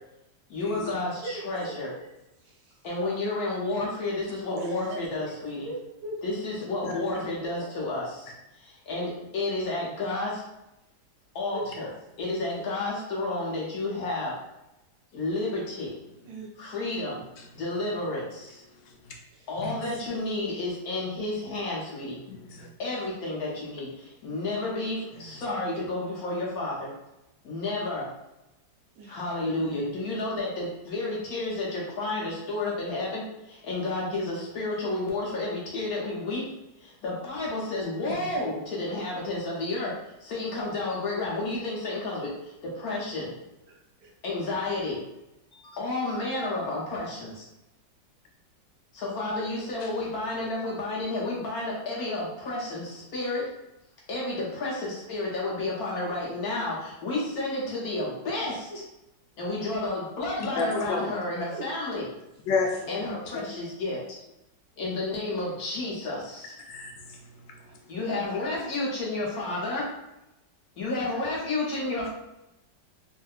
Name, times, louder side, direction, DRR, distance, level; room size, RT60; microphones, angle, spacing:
voice 1, 0.5-2.0 2.8-5.7 6.2-10.4 11.3-11.9 12.2-14.4 15.1-15.9 16.6-17.2 17.5-18.6 19.5-22.2 22.8-26.9 27.4-28.1 29.1-36.5 36.8-43.3 44.2-45.0 45.5-47.5 48.9-53.5 54.1-58.8 59.4-62.0 62.9-64.0 64.8-66.5 67.9-70.0 70.8-72.1, left 2 dB, 60° left, -4 dB, 1.1 m, -31 dB
voice 2, 1.2-1.8 2.4-2.8 4.5-5.1 5.6-6.2 11.5-11.7 16.2-16.5 19.3-19.5 23.0-23.1 29.0-29.2 43.7-44.1 54.2-54.4 57.6-57.7 58.0-58.1 61.5-61.7 67.7-67.8 68.2-68.3, right 3 dB, 85° right, -1 dB, 1.4 m, -39 dB
voice 3, 22.3-22.7 29.6-29.7 38.1-38.3 49.8-49.9 60.5-61.0 62.5-63.0 63.3-63.4 66.6-67.2, left 4 dB, 80° left, 1 dB, 1.2 m, -31 dB
3.5 x 2.6 x 2.3 m, 0.91 s
omnidirectional pair, 2.0 m